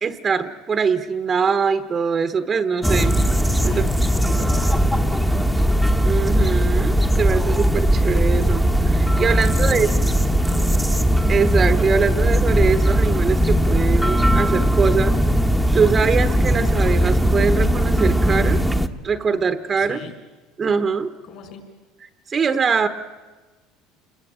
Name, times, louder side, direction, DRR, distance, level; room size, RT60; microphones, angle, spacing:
voice 1, 0.0-3.1 3.6-3.8 4.3-4.5 6.0-9.9 11.3-15.2 15.7-18.6 19.0-20.0 20.6-21.1 22.3-22.9, right 5 dB, 25° right, 10 dB, 1.2 m, -22 dB
sound 1, 2.8-18.9, equal, ahead, 1.2 m, -19 dB
voice 2, 3.6-5.4 9.3-10.8 19.8-20.1 21.2-21.6, left 7 dB, 55° left, 7 dB, 5.9 m, -38 dB
28.0 x 21.5 x 8.9 m, 1.2 s
supercardioid pair, 125°, 0 cm